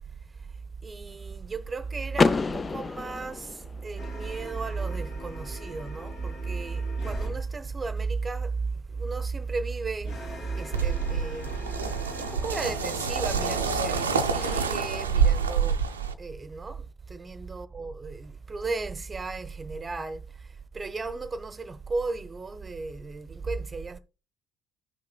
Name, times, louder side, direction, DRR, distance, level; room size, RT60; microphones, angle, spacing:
voice 1, 0.8-11.6 12.2-15.8 16.2-20.2 20.7-24.0, right 4 dB, 25° right, 0.8 m, -34 dB
Car / Door, 2.1-4.1, left 4 dB, 30° left, 0.3 m, -27 dB
sound 1, 4.0-7.4 10.0-14.6, left 1 dB, 60° left, 3.1 m, -42 dB
sound 2, 10.7-16.1, right 6 dB, 80° right, 0.5 m, -27 dB
15.0 x 5.9 x 2.2 m
figure-of-eight pair, 55°, 0 cm